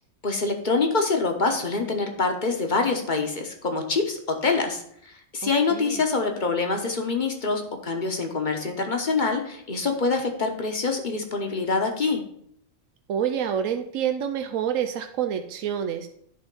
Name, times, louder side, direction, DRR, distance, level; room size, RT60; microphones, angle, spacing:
voice 1, 0.2-12.2, left 4 dB, 40° left, 4 dB, 1.1 m, -25 dB
voice 2, 5.4-6.0 13.1-16.1, right 8 dB, 85° right, 7 dB, 1.0 m, -28 dB
10.5 x 3.5 x 5.3 m, 0.69 s
omnidirectional pair, 1.4 m